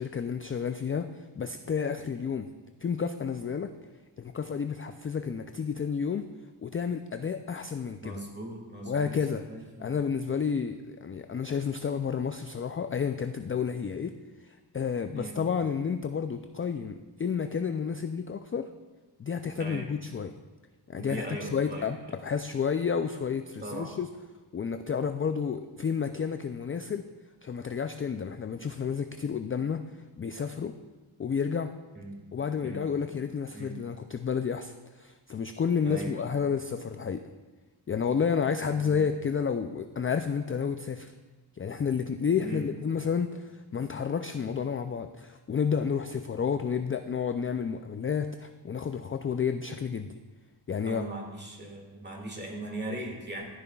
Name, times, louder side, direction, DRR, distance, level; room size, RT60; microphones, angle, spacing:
voice 1, 0.0-2.5 2.8-3.7 4.2-6.3 6.6-8.2 8.9-9.4 9.8-18.7 19.2-20.3 20.9-22.0 22.2-24.1 24.5-27.1 27.4-29.8 30.2-30.7 31.2-31.7 32.3-37.2 37.9-41.1 41.6-50.2 50.7-51.0, left 6 dB, 30° left, 8 dB, 0.4 m, -31 dB
voice 2, 8.0-10.0 15.1-15.4 19.6-19.9 21.0-22.2 23.6-23.9 31.9-32.2 32.6-32.9 33.5-33.8 35.8-36.3 38.7-39.0 42.4-42.7 50.8-53.5, right 1 dB, 20° right, 0 dB, 2.1 m, -39 dB
13.5 x 7.0 x 2.3 m, 1.2 s
cardioid pair, 55°, 49 cm